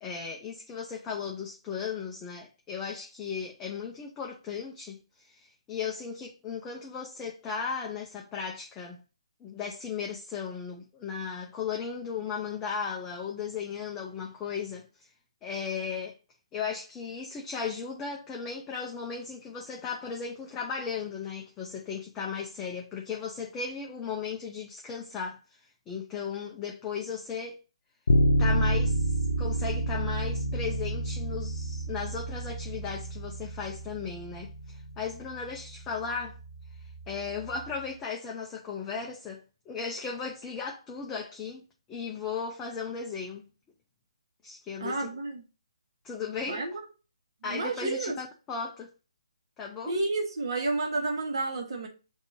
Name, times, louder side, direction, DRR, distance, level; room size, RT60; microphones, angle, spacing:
voice 1, 0.0-9.0 9.4-14.9 15.4-16.2 16.5-25.6 25.9-27.6 28.4-36.4 36.8-41.6 41.9-43.4 44.4-45.1 46.0-46.6 47.4-48.9 49.6-50.0, left 6 dB, 10° left, 0.4 m, -36 dB
Bass guitar, 28.1-37.9, right 1 dB, 75° left, 0.6 m, -30 dB
voice 2, 44.8-45.4 46.5-46.7 47.4-48.2 49.9-51.9, right 3 dB, 50° right, 1.2 m, -30 dB
6.7 x 2.7 x 2.7 m
hypercardioid pair, 165°, 3 cm